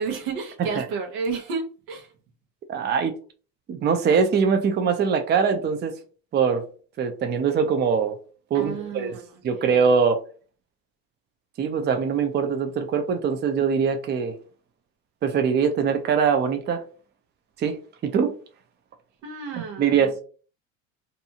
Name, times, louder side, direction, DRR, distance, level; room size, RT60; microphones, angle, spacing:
voice 1, 0.0-2.1 8.5-9.8 19.2-20.0, right 4 dB, 85° right, 0.9 m, -32 dB
voice 2, 2.7-3.1 3.7-5.9 6.3-6.6 7.0-8.1 8.5-9.2 9.4-10.2 11.6-14.3 15.2-16.8 17.6-17.8 18.0-18.3 19.6-20.1, right 6 dB, 30° right, 0.5 m, -22 dB
2.7 x 2.3 x 2.7 m
supercardioid pair, 95°, 37 cm